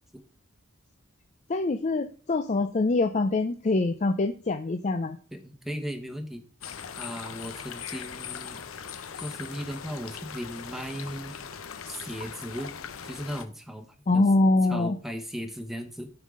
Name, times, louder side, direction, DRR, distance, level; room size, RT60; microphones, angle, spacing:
voice 1, 1.5-5.2 14.1-15.0, left 2 dB, 35° left, 7 dB, 0.4 m, -24 dB
voice 2, 5.3-6.4 7.0-8.6 9.2-11.4 11.9-12.7 13.0-14.2 14.7-16.1, equal, ahead, 6 dB, 1.1 m, -37 dB
sound 1, 6.6-13.5, left 7 dB, 80° left, 0.7 m, -40 dB
13.0 x 5.5 x 3.7 m, 0.43 s
head